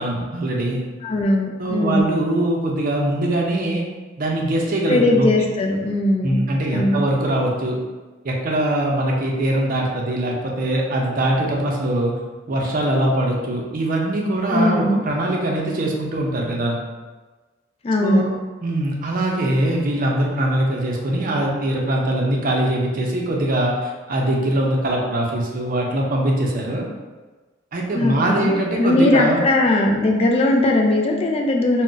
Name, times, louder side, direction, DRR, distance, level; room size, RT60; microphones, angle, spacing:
voice 1, 0.0-0.9 1.6-3.8 4.2-5.3 6.2-7.8 8.2-12.1 12.5-16.8 18.0-18.3 18.6-26.9 27.7-29.4, right 1 dB, 45° right, -1 dB, 0.5 m, -22 dB
voice 2, 1.0-2.0 4.9-6.4 6.7-7.0 14.5-15.0 17.8-18.2 27.9-31.8, left 1 dB, 30° left, 1 dB, 0.3 m, -19 dB
2.5 x 2.1 x 3.7 m, 1.3 s
head